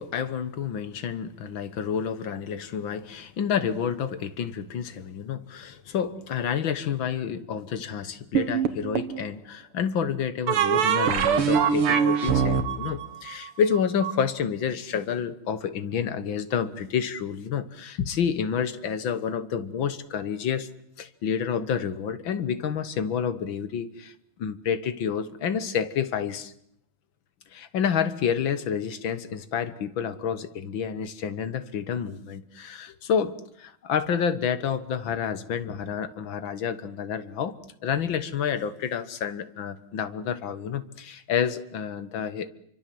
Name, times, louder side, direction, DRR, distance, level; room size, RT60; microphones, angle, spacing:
voice 1, 0.0-20.7 21.0-24.1 24.4-26.5 27.5-37.6 37.8-42.5, left 7 dB, 65° left, 14 dB, 2.0 m, -29 dB
sound 1, 8.3-9.2 10.5-14.1, right 7 dB, 85° right, 2.4 m, -23 dB
27.0 x 24.5 x 7.8 m, 0.71 s
omnidirectional pair, 2.4 m